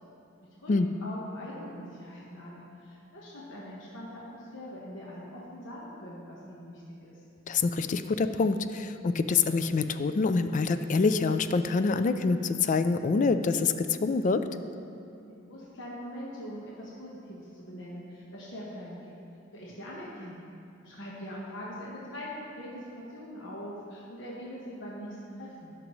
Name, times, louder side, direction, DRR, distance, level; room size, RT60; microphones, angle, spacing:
voice 1, 0.6-7.2 15.2-19.1 19.5-20.5 20.8-25.7, equal, 65° left, -5 dB, 1.3 m, -42 dB
voice 2, 7.5-14.4, left 4 dB, 40° left, 10 dB, 0.3 m, -26 dB
16.0 x 6.0 x 3.1 m, 2.7 s
head